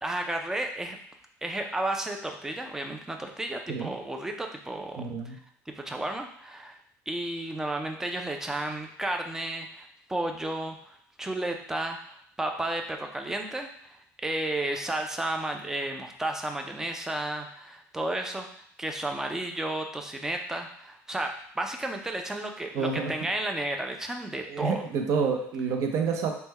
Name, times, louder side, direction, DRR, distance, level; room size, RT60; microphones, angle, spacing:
voice 1, 0.0-1.0 1.4-5.4 5.7-6.8 7.1-18.5 18.8-24.8, right 1 dB, 10° right, 3 dB, 0.4 m, -33 dB
voice 2, 5.0-5.4 22.7-23.1 24.5-26.3, right 5 dB, 65° right, 3 dB, 0.6 m, -28 dB
3.3 x 2.1 x 3.2 m, 0.64 s
cardioid pair, 120°, 6 cm